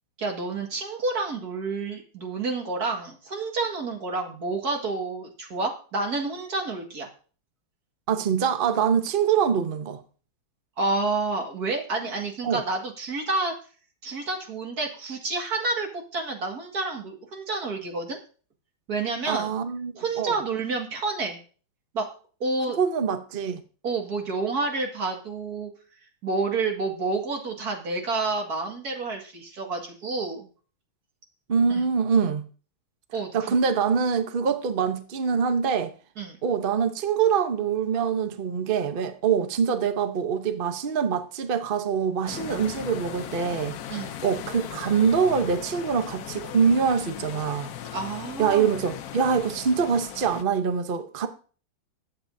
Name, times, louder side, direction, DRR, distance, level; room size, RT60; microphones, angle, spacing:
voice 1, 0.2-7.1 10.8-13.5 14.0-18.2 18.9-19.6 20.0-21.4 21.9-22.1 22.4-22.8 23.8-25.7 26.2-30.5 31.7-31.8 33.1-33.6 36.2-36.4 43.9-44.2 47.9-48.7, right 3 dB, 50° right, 2.3 m, -29 dB
voice 2, 8.1-10.0 12.4-12.6 19.3-20.3 22.7-23.6 31.5-32.4 33.3-35.9 36.4-43.8 44.2-47.7 48.4-51.3, right 6 dB, 75° right, 0.4 m, -24 dB
sound 1, 42.3-50.4, left 10 dB, 65° left, 0.9 m, -38 dB
20.5 x 8.0 x 2.7 m
omnidirectional pair, 2.2 m